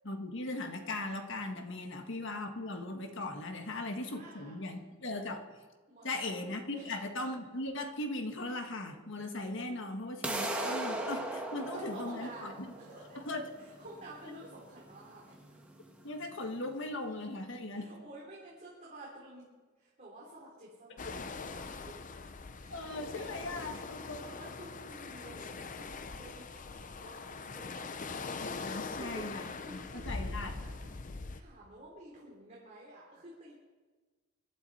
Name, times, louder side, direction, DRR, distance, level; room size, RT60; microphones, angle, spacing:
voice 1, 0.1-5.4 6.0-6.6 6.9-12.3 13.1-13.5 16.0-17.9 21.0-21.2 22.7-23.8 24.1-24.2 28.4-29.4 29.7-29.8 30.1-30.5, left 2 dB, 60° left, 5 dB, 1.6 m, -38 dB
voice 2, 1.8-2.1 3.7-4.8 5.9-6.4 6.7-7.1 11.7-13.2 13.6-15.6 16.3-16.8 17.7-22.1 22.6-27.9 28.7-33.5, right 1 dB, 35° right, -5 dB, 3.6 m, -51 dB
sound 1, 10.2-16.2, right 1 dB, 5° right, 1.9 m, -39 dB
sound 2, 21.0-31.4, left 4 dB, 40° left, 0.6 m, -42 dB
25.5 x 12.0 x 4.3 m, 1.4 s
head